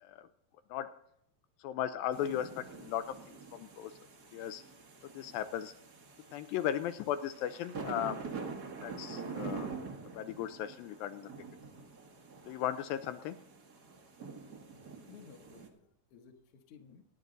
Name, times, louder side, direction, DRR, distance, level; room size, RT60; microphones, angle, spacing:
voice 1, 1.6-3.9 4.3-4.6 5.1-5.7 6.3-8.2 8.8-9.7 10.1-11.3 12.5-13.4, left 11 dB, 80° left, 9 dB, 2.3 m, -36 dB
sound 1, 2.1-15.7, right 4 dB, 50° right, 1.2 m, -46 dB
voice 2, 15.1-17.0, left 6 dB, 60° left, 5 dB, 1.7 m, -56 dB
25.0 x 9.4 x 4.0 m, 0.75 s
omnidirectional pair, 4.2 m